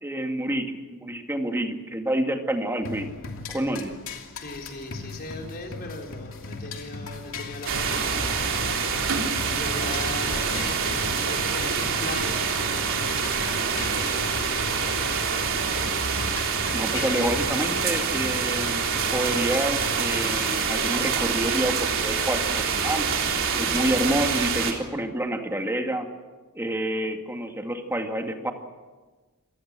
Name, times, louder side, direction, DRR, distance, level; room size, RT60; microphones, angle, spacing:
voice 1, 0.0-3.1 3.5-3.9 16.7-23.1 23.6-26.1 26.5-28.5, right 1 dB, 10° right, 4 dB, 2.3 m, -28 dB
sound 1, 2.8-20.5, left 3 dB, 65° left, 2.9 m, -39 dB
voice 2, 4.3-9.1 9.4-11.0 11.3-15.4, left 2 dB, 45° left, 1 dB, 4.0 m, -39 dB
sound 2, 7.7-24.7, right 5 dB, 60° right, 3.8 m, -26 dB
28.0 x 18.5 x 7.6 m, 1.3 s
head